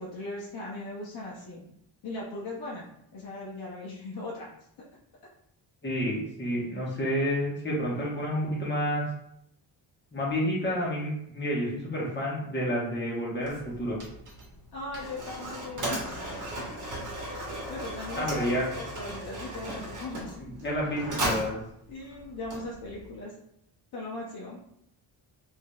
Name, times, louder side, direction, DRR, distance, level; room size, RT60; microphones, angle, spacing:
voice 1, 0.0-1.7 2.0-2.9 3.1-4.5 4.8-4.9 14.7-16.7 17.2-20.4 21.9-23.4 23.9-24.6, left 2 dB, 55° left, -5 dB, 0.7 m, -39 dB
voice 2, 5.8-9.0 10.1-14.0 18.2-18.6 20.4-21.6, equal, 25° left, -5 dB, 1.1 m, -29 dB
Mechanisms, 13.4-23.1, right 1 dB, 40° right, 1.1 m, -37 dB
3.6 x 2.7 x 2.3 m, 0.76 s
cardioid pair, 125°, 46 cm